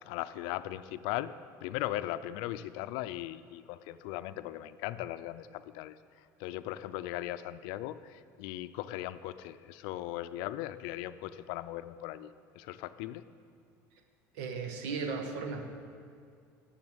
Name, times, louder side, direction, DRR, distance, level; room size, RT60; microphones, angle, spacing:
voice 1, 0.0-1.3 1.6-13.3, left 14 dB, 75° left, 13 dB, 0.5 m, -38 dB
voice 2, 14.3-15.6, right 4 dB, 80° right, 5 dB, 1.4 m, -36 dB
11.0 x 7.1 x 8.0 m, 2.3 s
cardioid pair, 130°, 8 cm